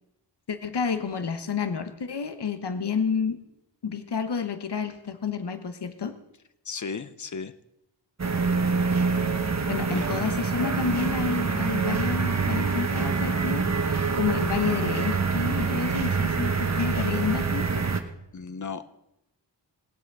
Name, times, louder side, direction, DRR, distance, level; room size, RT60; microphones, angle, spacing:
voice 1, 0.5-3.4 3.8-6.2 9.7-17.8, left 6 dB, 65° left, 9 dB, 1.2 m, -30 dB
voice 2, 6.6-7.5 9.9-10.0 18.3-18.9, left 5 dB, 40° left, 13 dB, 0.8 m, -35 dB
sound 1, 8.2-18.0, right 4 dB, 35° right, 1.2 m, -26 dB
18.5 x 8.2 x 6.7 m, 0.86 s
wide cardioid pair, 100°, 44 cm